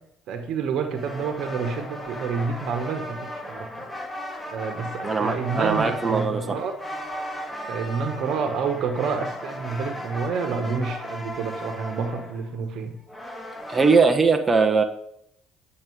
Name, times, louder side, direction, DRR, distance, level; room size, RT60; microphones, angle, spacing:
voice 1, 0.3-3.7 4.5-6.7 7.7-12.9, right 5 dB, 65° right, 7 dB, 1.5 m, -28 dB
sound 1, 0.9-14.1, equal, 15° left, 2.4 m, -36 dB
voice 2, 5.0-6.4 13.7-14.8, right 4 dB, 25° right, 4 dB, 1.1 m, -20 dB
9.3 x 6.6 x 4.9 m, 0.75 s
hypercardioid pair, 65°, 0 cm